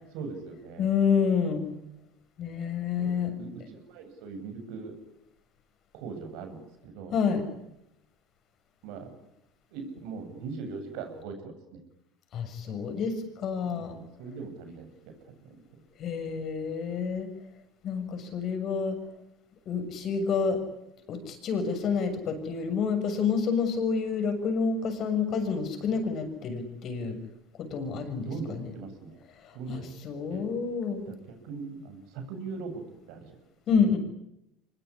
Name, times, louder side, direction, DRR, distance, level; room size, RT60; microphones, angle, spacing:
voice 1, 0.1-0.9 3.0-5.0 5.9-7.2 8.8-9.2 9.7-11.8 13.7-15.1 28.3-29.2 29.5-29.9 30.3-30.4 31.1-32.8 33.1-33.3, right 4 dB, 70° right, 6 dB, 8.0 m, -40 dB
voice 2, 0.8-1.6 2.4-3.3 7.1-7.4 12.3-14.0 16.0-17.3 17.8-19.0 19.7-20.6 21.1-27.2 27.6-28.7 29.7-31.0 33.7-34.0, left 6 dB, 45° left, 8 dB, 7.0 m, -28 dB
24.5 x 21.5 x 10.0 m, 0.82 s
supercardioid pair, 125°, 0 cm